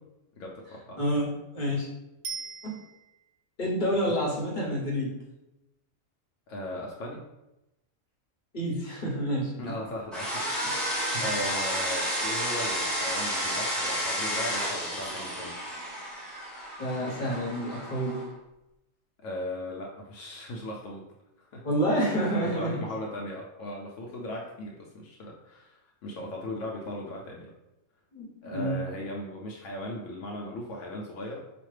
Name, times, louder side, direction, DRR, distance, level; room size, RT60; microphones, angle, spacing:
voice 1, 0.4-1.0 6.5-7.2 9.6-10.5 10.7-15.6 19.2-21.1 21.4-21.7 22.6-27.5 28.4-31.4, left 1 dB, 70° left, -1 dB, 0.9 m, -38 dB
voice 2, 1.0-1.9 2.6-2.7 3.6-5.1 8.5-9.5 11.1-11.2 16.8-18.3 21.6-22.8 28.1-28.8, equal, 45° left, -3 dB, 0.9 m, -28 dB
Bicycle bell, 2.2-3.4 12.4-12.5, right 5 dB, 90° right, 1.0 m, -39 dB
sound 1, 10.1-18.2, equal, ahead, 0.9 m, -31 dB
4.9 x 2.3 x 3.2 m, 0.92 s
omnidirectional pair, 1.4 m